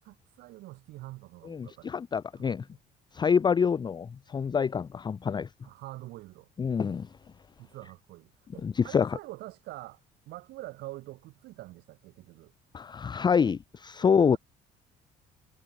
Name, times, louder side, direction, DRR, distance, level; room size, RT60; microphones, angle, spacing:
voice 1, 0.0-1.9 2.3-2.8 5.6-6.5 7.6-10.0 10.3-12.5 14.0-14.4, right 18 dB, 85° right, 5.0 m, -45 dB
voice 2, 1.5-2.6 3.1-5.5 6.6-7.1 8.6-9.2 12.7-14.4, left 6 dB, 25° left, 0.5 m, -26 dB
cardioid pair, 110°, 17 cm